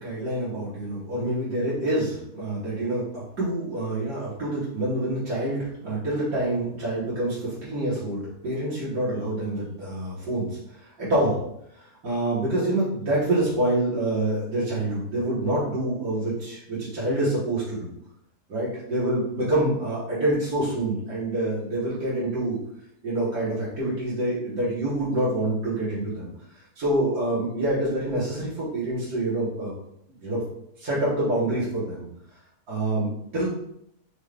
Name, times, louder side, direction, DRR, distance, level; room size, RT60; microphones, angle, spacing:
voice 1, 0.0-10.6 11.0-11.4 11.7-17.9 18.5-22.6 23.0-26.3 26.8-29.7 30.2-30.4 30.8-32.1 32.7-33.5, right 1 dB, 65° right, -11 dB, 2.1 m, -26 dB
5.1 x 2.6 x 3.4 m, 0.76 s
omnidirectional pair, 1.7 m